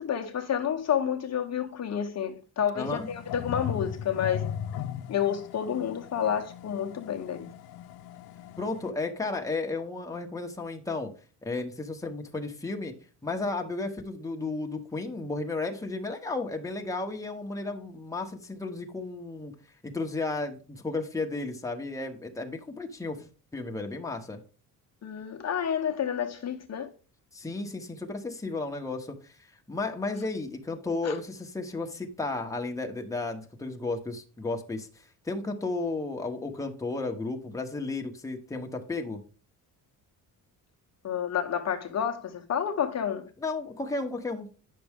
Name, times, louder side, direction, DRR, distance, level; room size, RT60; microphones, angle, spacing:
voice 1, 0.0-4.5 5.1-7.5 25.0-26.9 31.0-31.1 41.0-43.2, left 8 dB, 45° left, 0.9 m, -30 dB
voice 2, 2.7-3.1 8.6-11.1 11.4-12.9 13.2-19.5 19.8-23.2 23.5-24.4 27.3-39.2 43.4-44.5, left 3 dB, 10° left, 1.1 m, -33 dB
sound 1, 2.8-8.9, left 9 dB, 80° left, 0.7 m, -38 dB
9.3 x 6.0 x 3.6 m
cardioid pair, 125°, 36 cm